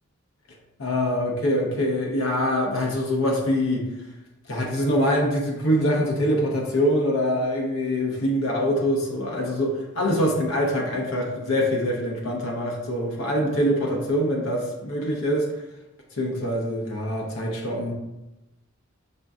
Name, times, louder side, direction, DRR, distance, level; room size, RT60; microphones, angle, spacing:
voice 1, 0.8-3.9 4.5-15.5 16.2-17.9, equal, 80° left, -1 dB, 0.7 m, -24 dB
5.1 x 2.5 x 2.3 m, 0.96 s
head